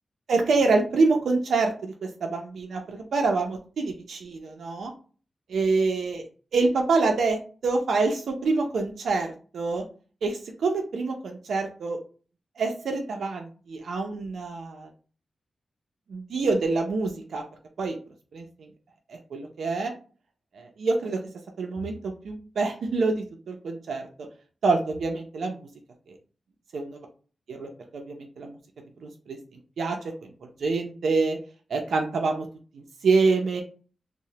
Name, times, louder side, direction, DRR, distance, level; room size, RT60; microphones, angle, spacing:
voice 1, 0.3-4.9 5.5-6.2 6.5-9.8 10.2-12.0 12.6-14.9 16.1-17.4 17.8-18.0 18.3-18.7 19.1-19.9 20.5-21.2 21.6-24.0 24.6-25.7 26.1-26.2 26.7-27.0 27.5-28.6 29.0-29.4 29.8-30.0 30.2-31.4 31.7-32.5 32.7-33.6, right 3 dB, 90° right, 3 dB, 0.4 m, -26 dB
3.0 x 2.0 x 2.7 m, 0.38 s
wide cardioid pair, 135°, 0 cm